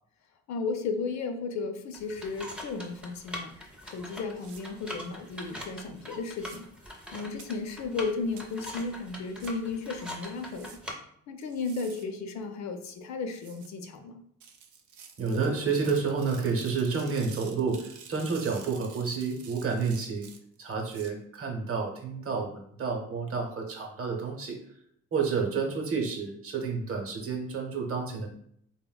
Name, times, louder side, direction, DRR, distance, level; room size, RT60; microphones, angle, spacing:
voice 1, 0.5-3.5 3.8-6.7 7.1-10.8 11.3-14.2, left 4 dB, 65° left, 6 dB, 0.4 m, -34 dB
sound 1, 1.9-10.9, left 1 dB, 5° right, 0.5 m, -43 dB
sound 2, 4.4-4.6 6.4-6.6 7.4-7.5 8.4-8.5 9.4-9.5 10.4-10.8 11.4-12.0 13.4-13.7 14.4-21.1, right 7 dB, 75° right, 0.5 m, -50 dB
voice 2, 15.2-20.3 20.6-24.6 25.1-28.3, right 5 dB, 50° right, 1 dB, 0.7 m, -30 dB
3.3 x 2.1 x 2.2 m, 0.69 s
cardioid pair, 90°, 30 cm